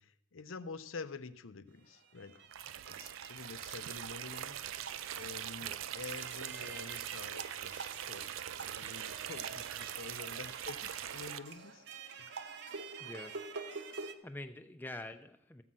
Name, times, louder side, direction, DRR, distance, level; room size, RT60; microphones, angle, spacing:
voice 1, 0.0-2.4 2.9-4.6 5.1-11.8 12.2-12.3, left 4 dB, 80° left, 13 dB, 0.6 m, -48 dB
sound 1, 1.8-14.1, right 5 dB, 55° right, 0.8 m, -47 dB
sound 2, 2.5-11.4, right 11 dB, 80° right, 0.4 m, -42 dB
voice 2, 13.0-13.3 14.2-15.6, left 1 dB, 10° left, 7 dB, 0.6 m, -46 dB
14.0 x 5.5 x 7.5 m, 0.80 s
head